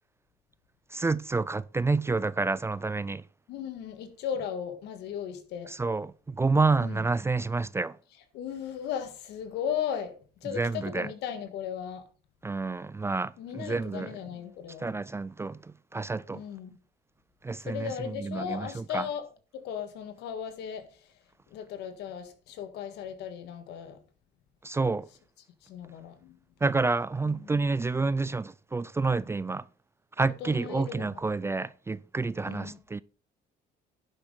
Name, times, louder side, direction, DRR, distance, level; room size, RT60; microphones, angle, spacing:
voice 1, 0.9-3.2 5.7-8.0 10.5-11.1 12.4-14.2 14.8-16.4 17.4-19.1 24.6-25.1 26.6-29.6 30.2-33.0, right 3 dB, 15° right, 0.3 m, -29 dB
voice 2, 3.5-5.7 6.8-7.0 8.3-10.1 10.4-12.0 13.4-14.9 16.3-16.8 17.6-19.2 19.5-20.9 21.5-24.0 25.6-26.4 27.2-27.6 30.4-31.2 32.4-32.8, left 8 dB, 85° left, 1.7 m, -36 dB
10.5 x 7.9 x 3.8 m
cardioid pair, 110°, 17 cm